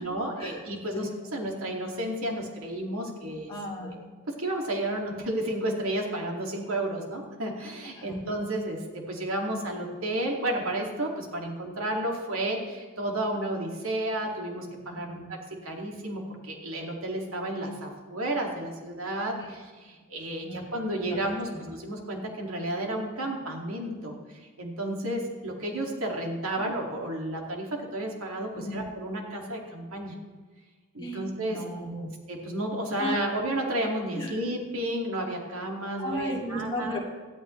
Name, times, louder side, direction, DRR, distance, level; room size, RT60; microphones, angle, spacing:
voice 1, 0.0-3.5 3.8-4.0 4.3-15.4 15.6-30.2 30.9-31.6 31.9-37.0, right 1 dB, 75° right, 1 dB, 2.3 m, -32 dB
voice 2, 3.5-3.9 7.9-8.2 15.1-15.3 19.4-19.5 20.4-20.7 21.1-21.3 26.6-26.7 28.5-28.9 31.0-31.2 31.5-32.1 33.0-33.2 34.1-34.4 36.0-37.1, equal, 20° left, -4 dB, 2.5 m, -34 dB
18.0 x 12.5 x 3.2 m, 1.4 s
head